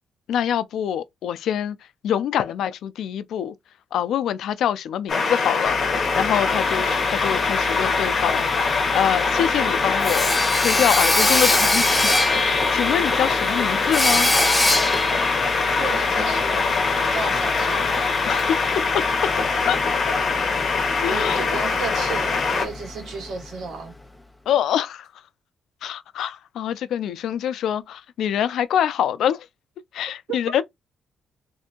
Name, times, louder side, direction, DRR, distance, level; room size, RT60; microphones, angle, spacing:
voice 1, 0.3-1.8 2.0-3.5 3.9-14.3 18.2-19.1 19.7-19.8 21.0-21.5 24.5-25.1 25.8-29.5 29.9-30.6, left 9 dB, 70° left, 0.3 m, -25 dB
sound 1, 5.1-22.7, left 4 dB, 40° left, 1.0 m, -23 dB
Sawing, 5.7-23.5, left 1 dB, 5° left, 0.5 m, -26 dB
voice 2, 15.8-16.7 17.0-17.9 21.1-23.9 30.3-30.4, right 5 dB, 65° right, 1.4 m, -33 dB
3.3 x 2.6 x 2.8 m
cardioid pair, 160°, 0 cm